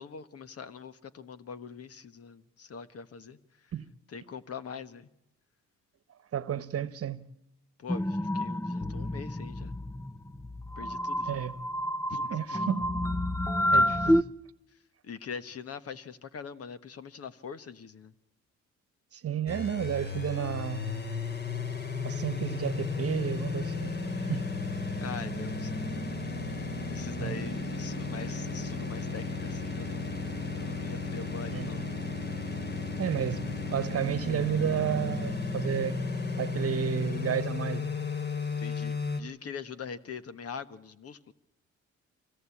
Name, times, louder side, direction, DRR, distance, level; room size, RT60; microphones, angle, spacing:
voice 1, 0.0-3.4 4.1-5.1 7.8-9.8 10.8-11.4 12.1-12.4 14.0-14.2 15.0-18.1 25.0-26.1 26.6-30.3 30.6-31.9 38.6-41.3, left 6 dB, 50° left, 1.4 m, -43 dB
voice 2, 6.3-7.3 11.3-11.5 12.3-12.9 13.6-14.2 19.1-21.1 22.0-24.0 24.3-24.4 27.2-27.4 31.5-31.8 33.0-33.4 33.7-36.0 36.4-37.9, right 9 dB, 50° right, 1.2 m, -32 dB
sound 1, 7.9-14.2, equal, 10° left, 0.8 m, -29 dB
sound 2, 19.5-39.2, left 4 dB, 35° left, 2.5 m, -34 dB
25.0 x 17.5 x 8.6 m
cardioid pair, 90°, 30 cm